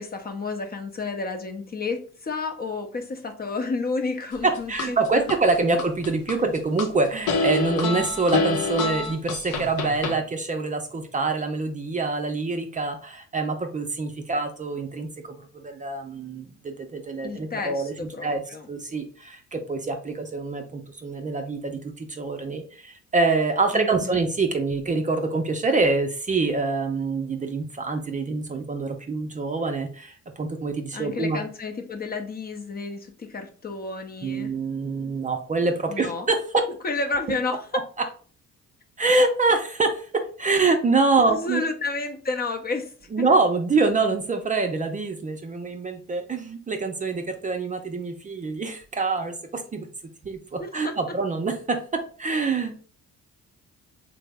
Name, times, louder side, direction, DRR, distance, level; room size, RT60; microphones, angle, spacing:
voice 1, 0.0-5.2 17.2-18.7 23.7-24.2 30.9-34.5 35.9-36.3 36.8-37.7 41.3-43.2 50.6-50.9, left 3 dB, 30° left, 5 dB, 0.5 m, -31 dB
sound 1, 4.3-5.4 5.8-6.9 7.3-10.2, left 3 dB, 85° left, 0.7 m, -26 dB
voice 2, 4.4-17.9 18.2-18.4 18.7-31.4 34.2-36.6 39.0-41.6 43.1-49.9 50.2-51.8 52.2-52.7, right 3 dB, 25° right, 5 dB, 0.5 m, -25 dB
3.3 x 2.0 x 3.3 m, 0.41 s
cardioid pair, 90°, 30 cm